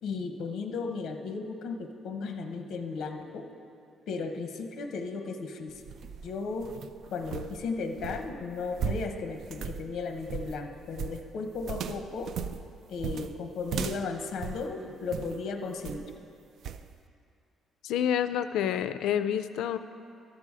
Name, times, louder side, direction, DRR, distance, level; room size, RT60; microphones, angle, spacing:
voice 1, 0.0-3.5 4.1-5.7 6.2-6.7 7.1-12.3 12.9-16.1, left 4 dB, 60° left, 5 dB, 0.8 m, -35 dB
sound 1, 5.7-15.4 15.8-16.2 16.6-16.9, right 7 dB, 55° right, 0.3 m, -37 dB
voice 2, 17.8-19.8, left 9 dB, 80° left, 11 dB, 0.4 m, -28 dB
12.0 x 6.8 x 4.8 m, 2.6 s
cardioid pair, 170°, 0 cm